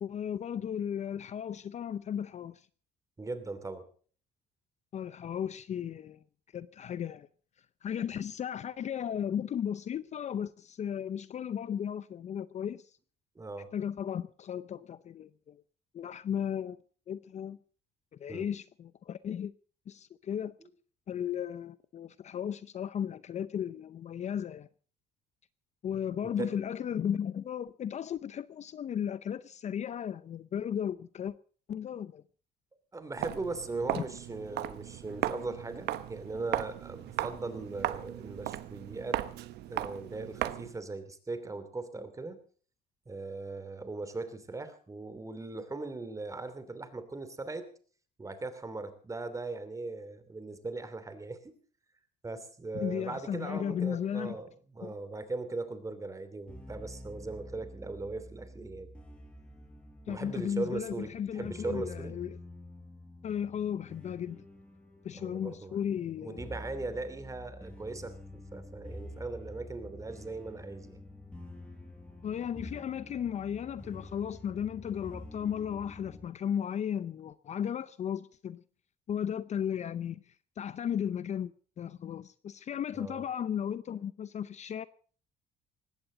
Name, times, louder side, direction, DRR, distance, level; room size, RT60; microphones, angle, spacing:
voice 1, 0.0-2.6 4.9-6.2 6.5-7.3 7.8-12.9 13.7-15.6 15.9-16.8 17.1-17.6 18.1-19.5 19.9-20.5 21.1-24.7 25.8-31.3 31.7-32.2 33.9-34.0 52.7-54.4 54.8-54.9 60.1-62.3 63.2-64.4 65.0-66.5 72.2-78.6 79.1-84.9, left 9 dB, 45° left, 0.6 m, -35 dB
voice 2, 3.2-3.9 13.3-13.7 18.3-18.5 26.2-26.5 32.9-39.2 39.7-42.4 43.1-47.7 48.2-51.6 52.2-58.9 60.1-62.2 65.1-65.8 66.2-71.0 82.9-83.2, right 3 dB, 20° right, 2.8 m, -39 dB
Walk footsteps, 33.1-40.8, right 14 dB, 75° right, 1.1 m, -37 dB
sound 1, 56.5-76.3, left 1 dB, 5° left, 4.9 m, -48 dB
19.5 x 16.0 x 3.9 m
cardioid pair, 110°, 17 cm